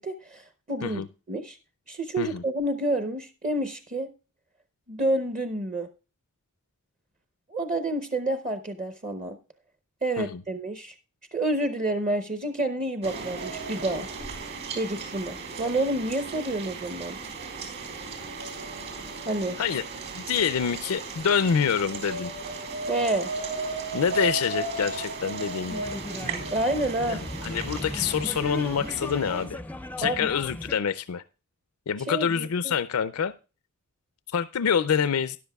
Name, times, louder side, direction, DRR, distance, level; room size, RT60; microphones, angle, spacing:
voice 1, 0.0-1.6 1.9-4.1 4.9-5.9 7.5-9.4 10.0-10.9 11.3-14.1 14.8-17.2 19.3-19.6 22.9-23.3 26.5-27.2 30.0-30.3 32.1-32.7, right 1 dB, 35° right, 9 dB, 0.8 m, -29 dB
sound 1, 13.0-29.4, right 3 dB, 55° right, 3.9 m, -35 dB
voice 2, 20.1-22.3 23.9-25.9 27.1-29.6 30.0-31.2 31.9-33.3 34.3-35.4, left 7 dB, 80° left, 13 dB, 0.5 m, -26 dB
sound 2, 25.7-30.8, left 1 dB, 5° left, 0.4 m, -37 dB
13.5 x 10.5 x 2.3 m, 0.33 s
head